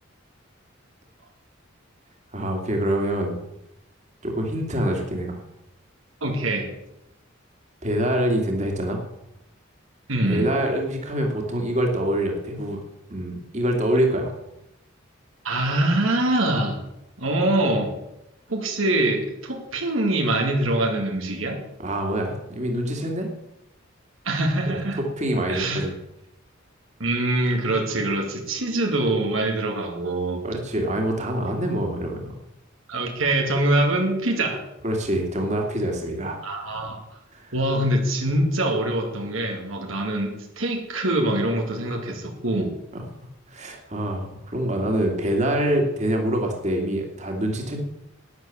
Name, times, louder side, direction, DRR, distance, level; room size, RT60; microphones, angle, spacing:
voice 1, 2.3-3.4 4.2-5.4 7.8-9.0 10.2-12.8 13.1-14.4 21.8-23.3 24.7-25.9 30.4-32.3 34.8-36.4 37.3-37.5 42.9-43.0 43.5-47.8, right 1 dB, 35° right, 2 dB, 2.4 m, -25 dB
voice 2, 6.2-6.7 10.1-10.5 15.4-16.8 17.2-17.9 18.5-21.6 24.2-25.0 25.5-25.9 27.0-30.4 32.9-34.6 36.4-37.0 37.5-42.7, right 1 dB, 80° right, 2 dB, 2.3 m, -24 dB
12.0 x 9.8 x 7.2 m, 0.85 s
head